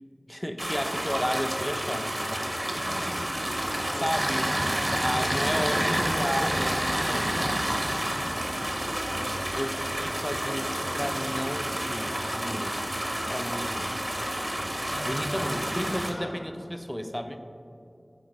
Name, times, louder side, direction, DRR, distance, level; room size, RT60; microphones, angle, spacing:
voice 1, 0.3-2.2 2.9-3.2 4.0-4.5 5.0-8.1 9.6-12.8 13.3-13.9 15.1-17.4, equal, 10° left, 7 dB, 0.4 m, -33 dB
sound 1, 0.6-16.1, right 1 dB, 40° right, 0.6 m, -29 dB
voice 2, 2.7-3.0 3.5-4.4 5.3-6.6 8.5-9.0 14.9-15.5 16.1-16.3, equal, 75° left, -2 dB, 1.3 m, -38 dB
8.6 x 3.1 x 4.0 m, 2.5 s
wide cardioid pair, 40°, 0 cm